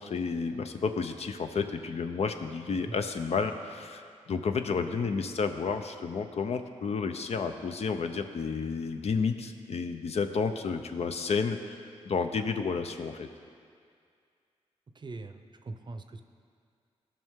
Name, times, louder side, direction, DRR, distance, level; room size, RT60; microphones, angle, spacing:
voice 1, 0.0-11.8 12.0-13.3, left 5 dB, 60° left, 7 dB, 0.6 m, -31 dB
voice 2, 14.9-16.2, right 3 dB, 40° right, 8 dB, 0.6 m, -42 dB
15.0 x 5.6 x 3.6 m, 2.2 s
cardioid pair, 65°, 12 cm